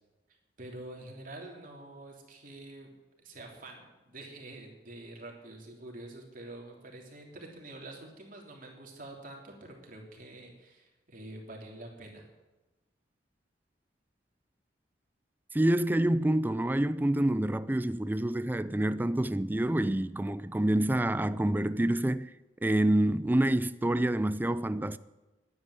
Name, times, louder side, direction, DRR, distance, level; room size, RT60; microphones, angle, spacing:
voice 1, 0.6-2.9 3.2-12.3, right 2 dB, 50° right, 3.2 m, -46 dB
voice 2, 15.5-22.3 22.6-25.0, right 1 dB, 10° right, 0.4 m, -27 dB
10.5 x 9.5 x 9.7 m
head